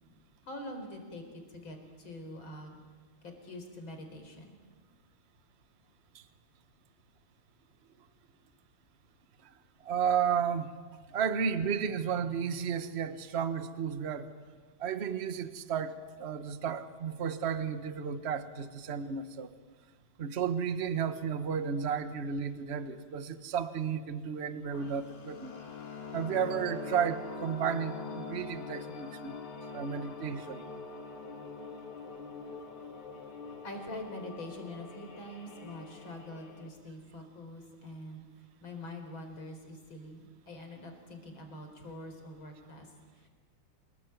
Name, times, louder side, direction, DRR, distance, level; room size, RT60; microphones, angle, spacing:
voice 1, 0.4-2.8 3.2-4.6 33.6-38.2 38.6-43.3, left 1 dB, 65° left, 5 dB, 5.1 m, -45 dB
voice 2, 9.8-10.7 11.1-14.3 14.8-19.5 20.2-25.5 26.1-29.4 29.7-30.7, right 7 dB, 35° right, 10 dB, 1.2 m, -33 dB
sound 1, 24.7-36.7, left 4 dB, 80° left, 3.7 m, -44 dB
28.0 x 20.5 x 9.2 m, 1.5 s
omnidirectional pair, 2.4 m